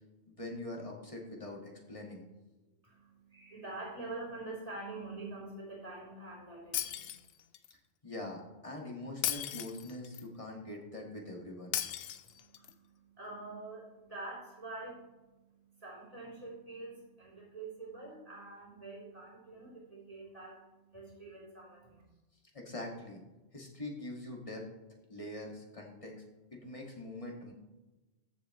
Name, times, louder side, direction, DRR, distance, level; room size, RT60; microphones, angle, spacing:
voice 1, 0.3-2.3 8.0-11.8 22.5-23.2 23.5-24.7 25.1-26.2 26.5-27.5, left 1 dB, 25° left, 0 dB, 1.9 m, -43 dB
voice 2, 2.8-7.1 12.2-22.0, right 2 dB, 30° right, -5 dB, 3.7 m, -46 dB
Shatter, 6.7-7.7 9.2-10.2 11.7-12.7, left 10 dB, 65° left, 0.7 m, -36 dB
14.5 x 7.0 x 3.1 m, 1.1 s
omnidirectional pair, 1.3 m